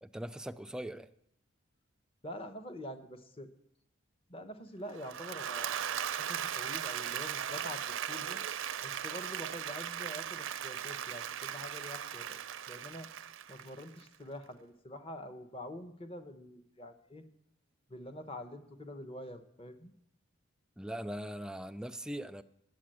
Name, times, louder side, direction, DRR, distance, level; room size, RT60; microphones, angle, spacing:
voice 1, 0.0-1.1 20.8-22.4, right 1 dB, 5° right, 0.3 m, -40 dB
voice 2, 2.2-3.5 4.3-8.4 8.8-12.4 12.7-13.1 13.5-17.2 17.9-19.9, left 1 dB, 30° left, 0.9 m, -46 dB
Applause / Crowd, 4.9-14.1, right 9 dB, 75° right, 0.5 m, -38 dB
10.5 x 8.4 x 7.6 m
head